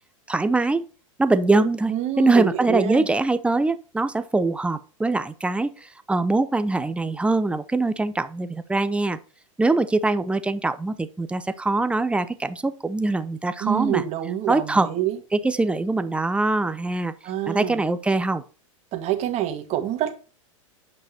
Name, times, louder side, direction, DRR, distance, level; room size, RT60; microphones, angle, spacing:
voice 1, 0.3-0.8 1.2-9.2 9.6-14.0 14.5-14.9 15.3-17.1 17.5-18.4, right 2 dB, 5° right, 0.7 m, -23 dB
voice 2, 1.9-3.1 13.6-15.2 17.2-17.8 18.9-20.1, right 12 dB, 40° right, 2.0 m, -26 dB
9.3 x 5.4 x 4.5 m
hypercardioid pair, 115°, 17 cm